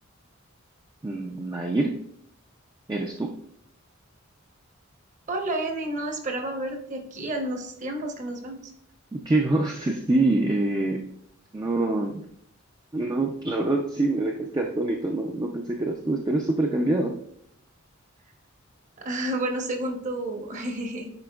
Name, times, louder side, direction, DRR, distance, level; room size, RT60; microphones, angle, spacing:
voice 1, 1.0-2.0 2.9-3.3 9.1-11.1 11.5-12.2 12.9-17.1, right 2 dB, 20° right, 0 dB, 0.4 m, -25 dB
voice 2, 5.3-8.7 19.0-21.1, right 1 dB, 35° right, 3 dB, 0.9 m, -30 dB
9.6 x 4.2 x 2.3 m, 0.70 s
head